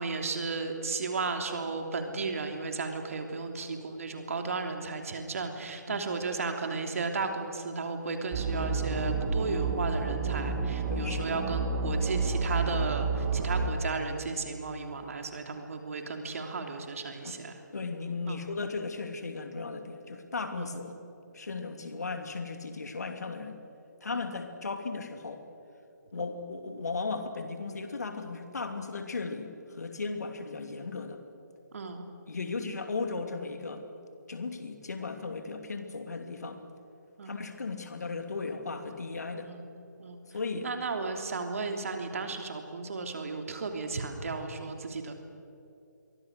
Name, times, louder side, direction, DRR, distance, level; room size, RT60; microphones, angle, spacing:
voice 1, 0.0-17.6 18.3-18.4 20.6-20.7 24.1-24.2 31.7-32.1 37.2-37.4 39.3-39.6 40.0-40.2 40.6-45.1, right 4 dB, 50° right, 4 dB, 3.2 m, -34 dB
sound 1, 8.3-13.7, right 4 dB, 20° right, 2.7 m, -30 dB
voice 2, 10.9-11.4 17.2-17.4 17.7-21.0 21.3-23.6 24.0-25.4 26.1-31.2 32.3-33.8 34.3-36.6 37.2-39.5 40.3-40.7, left 4 dB, 60° left, 6 dB, 2.8 m, -36 dB
28.0 x 23.5 x 6.6 m, 2.8 s
figure-of-eight pair, 145°, 10 cm